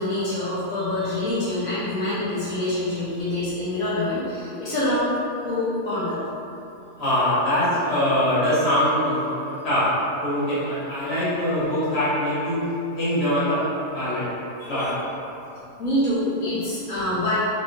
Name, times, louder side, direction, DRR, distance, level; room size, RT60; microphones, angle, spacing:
voice 1, 0.0-5.1 5.4-6.2 11.0-11.1 11.6-11.7 14.6-14.9 15.8-17.4, left 1 dB, 75° left, -13 dB, 1.5 m, -26 dB
voice 2, 7.0-9.8 10.2-12.6 13.0-13.6 13.9-14.2 14.7-14.9, left 1 dB, 45° left, -12 dB, 1.7 m, -23 dB
3.6 x 3.6 x 2.6 m, 2.8 s
omnidirectional pair, 1.6 m